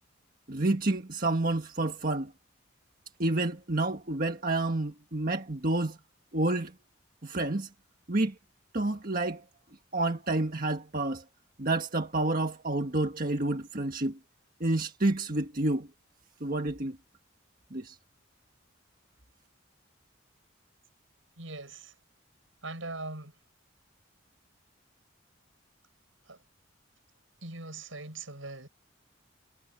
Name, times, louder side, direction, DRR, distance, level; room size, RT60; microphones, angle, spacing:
voice 1, 0.5-2.3 3.2-6.0 6.3-6.7 7.2-7.7 8.1-8.3 8.7-9.4 9.9-11.2 11.6-14.2 14.6-15.9 16.4-17.0 17.7-18.0, right 2 dB, 45° right, 1.6 m, -29 dB
voice 2, 21.4-21.9 22.6-23.4 26.3-26.4 27.4-28.7, right 2 dB, 80° right, 6.8 m, -41 dB
head